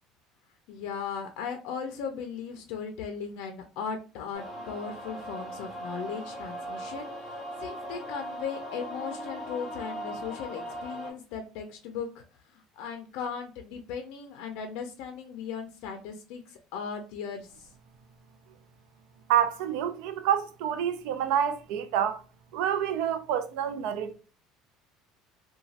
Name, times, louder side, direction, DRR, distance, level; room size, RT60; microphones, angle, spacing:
voice 1, 0.7-17.7, left 6 dB, 70° left, 0.4 m, -37 dB
sound 1, 4.3-11.1, equal, ahead, 1.5 m, -39 dB
voice 2, 19.3-22.2 22.5-24.1, right 9 dB, 75° right, 0.4 m, -27 dB
2.9 x 2.2 x 2.7 m
cardioid pair, 160°, 0 cm